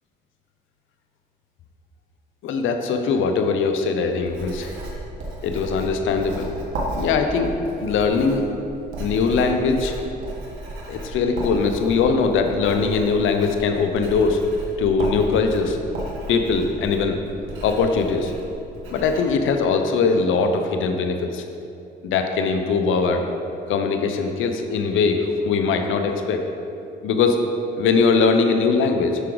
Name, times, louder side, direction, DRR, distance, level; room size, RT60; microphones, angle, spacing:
voice 1, 2.4-4.7 5.4-6.5 6.9-8.4 9.0-10.0 10.9-14.4 14.8-15.8 16.3-17.2 17.6-18.3 18.9-21.4 22.0-23.3 23.7-26.4 27.0-27.4 27.8-29.2, left 4 dB, 80° left, 5 dB, 0.7 m, -21 dB
Writing, 4.1-19.2, right 1 dB, 85° right, 1.5 m, -34 dB
8.1 x 5.9 x 3.9 m, 2.7 s
cardioid pair, 90°, 20 cm